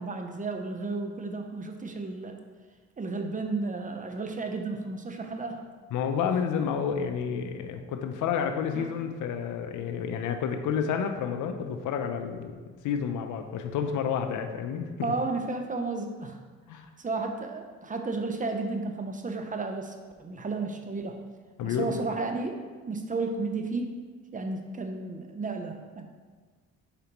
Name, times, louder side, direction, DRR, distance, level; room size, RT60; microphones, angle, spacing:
voice 1, 0.0-2.4 3.0-5.6 8.7-8.9 15.0-16.4 17.0-21.2 21.6-22.6 22.9-24.0 24.3-26.0, right 3 dB, 25° right, 4 dB, 0.7 m, -33 dB
voice 2, 5.9-12.6 12.8-14.9 16.7-16.9 21.6-21.9, left 7 dB, 80° left, 6 dB, 0.6 m, -30 dB
6.7 x 5.0 x 3.0 m, 1.4 s
cardioid pair, 90°, 30 cm